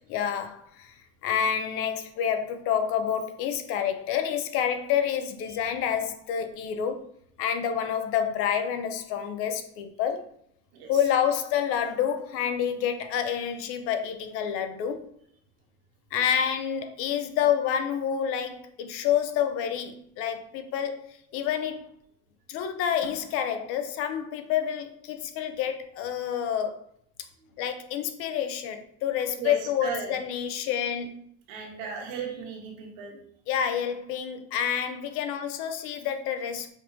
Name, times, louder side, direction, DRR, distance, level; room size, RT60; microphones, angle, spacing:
voice 1, 0.1-1.0 1.2-7.0 7.4-10.3 10.9-15.0 16.1-21.9 22.5-26.8 27.6-31.3 33.5-36.7, left 8 dB, 50° left, 7 dB, 0.5 m, -28 dB
voice 2, 29.8-30.2 31.5-33.2, right 6 dB, 75° right, 0 dB, 1.3 m, -36 dB
5.1 x 3.0 x 2.5 m, 0.67 s
cardioid pair, 155°, 30 cm